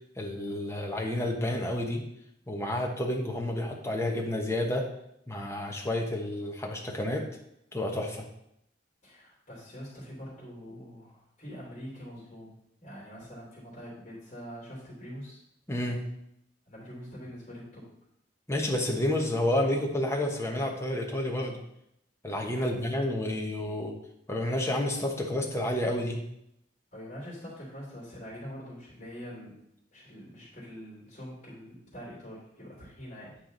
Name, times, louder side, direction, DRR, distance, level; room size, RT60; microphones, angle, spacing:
voice 1, 0.2-2.0 2.5-4.9 5.3-7.2 7.7-8.2 15.7-16.1 18.5-21.6 22.2-23.9 24.3-26.2, left 1 dB, 15° left, 0 dB, 1.1 m, -30 dB
voice 2, 9.0-12.6 12.8-15.4 16.7-17.9 22.5-22.7 26.9-29.6 29.9-33.4, equal, 40° left, -6 dB, 2.9 m, -44 dB
9.0 x 4.6 x 3.9 m, 0.77 s
head